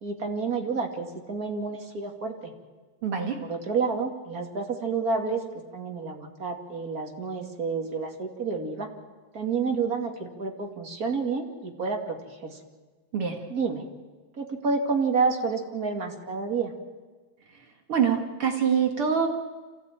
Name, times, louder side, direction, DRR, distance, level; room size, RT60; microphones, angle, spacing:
voice 1, 0.0-2.5 3.4-5.4 5.7-8.9 9.3-12.6 13.5-13.8 14.3-16.7, right 4 dB, 30° right, 3 dB, 2.5 m, -29 dB
voice 2, 3.0-3.4 13.1-13.4 17.9-19.3, right 7 dB, 50° right, 4 dB, 2.3 m, -24 dB
26.5 x 16.0 x 9.0 m, 1.4 s
omnidirectional pair, 3.3 m